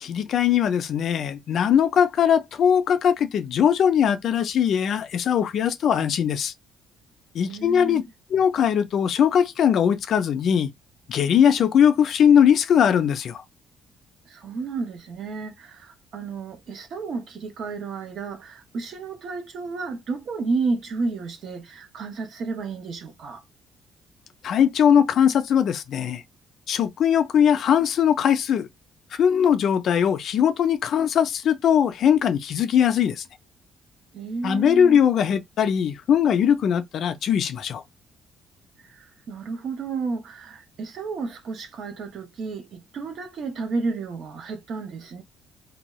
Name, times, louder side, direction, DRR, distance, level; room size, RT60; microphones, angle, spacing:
voice 1, 0.0-6.5 7.3-8.0 8.3-10.7 11.1-13.4 24.4-26.2 26.7-28.7 29.2-33.2 34.4-37.8, left 8 dB, 50° left, 0.4 m, -20 dB
voice 2, 7.4-8.0 14.3-23.4 34.1-35.0 38.8-45.2, right 4 dB, 50° right, 0.6 m, -32 dB
2.6 x 2.3 x 3.0 m
cardioid pair, 180°, 0 cm